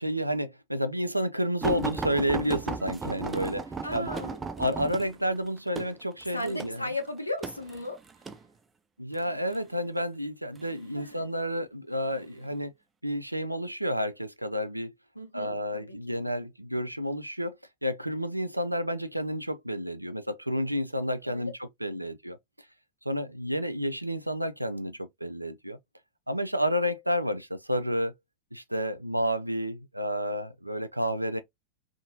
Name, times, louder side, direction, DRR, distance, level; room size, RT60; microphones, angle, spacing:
voice 1, 0.0-6.8 9.0-12.7 13.0-14.9 15.3-17.6 17.8-21.5 21.8-22.4 23.1-25.8 26.3-28.1 28.5-31.4, equal, 85° right, 0.3 m, -30 dB
sound 1, 1.6-8.4 9.2-9.6 10.6-11.2 11.9-12.1 12.5-12.6, right 4 dB, 15° right, 0.4 m, -35 dB
voice 2, 3.8-4.3 6.3-8.0 10.9-11.2 15.1-16.0 21.2-21.5, left 1 dB, 85° left, 0.6 m, -36 dB
2.8 x 2.5 x 2.6 m
figure-of-eight pair, 90°, 0 cm